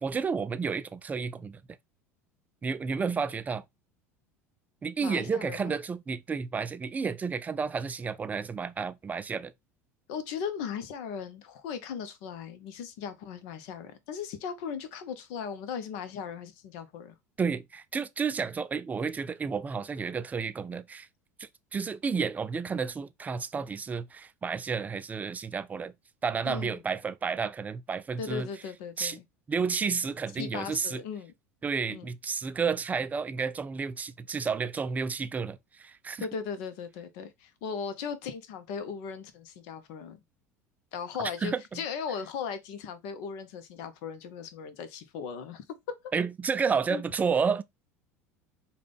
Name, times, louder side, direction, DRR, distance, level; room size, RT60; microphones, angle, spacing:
voice 1, 0.0-1.6 2.6-3.6 4.8-9.5 17.4-21.1 21.4-25.9 26.2-28.5 29.0-29.2 29.5-31.0 31.6-36.3 41.2-41.8 46.1-47.6, right 5 dB, 20° right, 0.4 m, -31 dB
voice 2, 5.0-5.7 10.1-17.1 26.5-26.8 28.2-29.2 30.4-31.3 31.9-32.1 36.2-40.2 40.9-45.9 46.9-47.0, left 7 dB, 55° left, 0.7 m, -37 dB
4.9 x 2.3 x 3.4 m
figure-of-eight pair, 70°, 8 cm